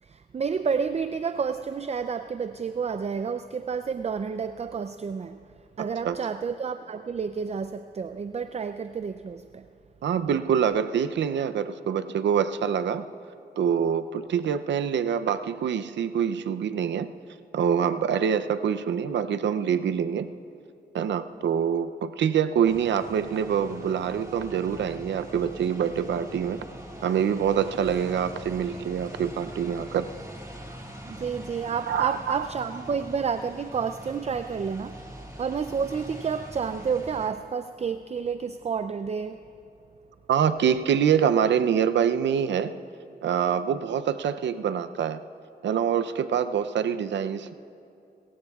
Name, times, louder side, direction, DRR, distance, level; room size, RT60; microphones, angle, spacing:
voice 1, 0.0-5.4 5.8-9.7 31.1-35.0 35.4-39.4, right 6 dB, 35° right, 10 dB, 0.4 m, -30 dB
voice 2, 10.0-13.1 13.6-17.1 17.5-20.3 20.9-26.7 27.0-30.1 31.9-32.4 40.3-42.7 43.2-45.2 45.6-47.5, right 8 dB, 85° right, 11 dB, 0.5 m, -25 dB
sound 1, 22.7-37.3, equal, 15° right, 1.8 m, -43 dB
28.0 x 15.0 x 2.4 m, 2.6 s
cardioid pair, 60°, 18 cm